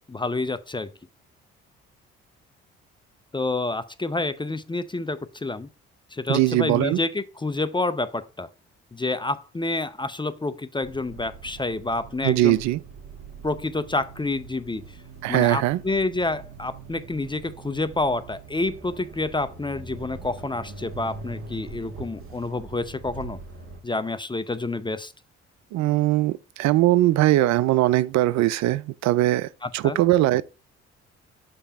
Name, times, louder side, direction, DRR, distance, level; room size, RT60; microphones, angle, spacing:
voice 1, 0.1-0.9 3.3-5.7 6.1-8.5 8.9-12.6 13.4-14.9 15.3-23.4 23.8-25.1 29.6-30.0, left 2 dB, 15° left, 0.6 m, -28 dB
voice 2, 6.3-7.0 12.2-12.8 15.2-15.8 25.7-30.4, right 16 dB, 65° right, 0.5 m, -21 dB
sound 1, 10.8-23.8, right 4 dB, 45° right, 2.0 m, -42 dB
6.8 x 3.4 x 5.4 m
hypercardioid pair, 55°, 30 cm